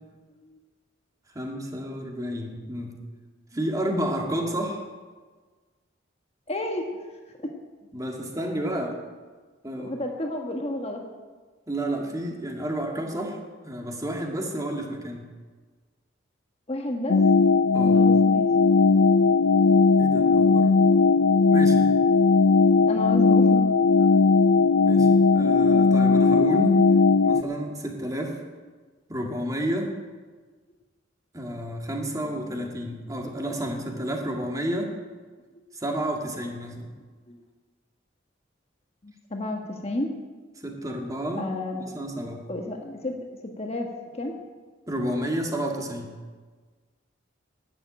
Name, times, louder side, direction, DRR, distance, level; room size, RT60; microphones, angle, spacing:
voice 1, 1.3-3.0 3.5-4.8 7.9-9.0 9.6-10.0 11.7-13.4 13.6-15.3 17.7-18.1 20.0-20.8 21.5-21.9 24.8-26.8 27.2-28.4 29.1-29.9 31.3-34.9 35.7-36.9 40.6-41.5 41.8-42.5 44.9-46.2, right 1 dB, 20° right, 1 dB, 2.1 m, -30 dB
voice 2, 6.5-6.8 7.3-7.5 9.7-11.0 12.5-12.6 16.7-17.2 17.9-18.5 21.3-21.4 22.9-23.7 37.3-37.4 39.0-40.1 41.4-42.1 42.5-44.4, left 1 dB, 35° left, 3 dB, 1.4 m, -32 dB
sound 1, 17.1-27.4, left 4 dB, 80° left, 0.5 m, -18 dB
12.0 x 9.5 x 8.9 m, 1.4 s
head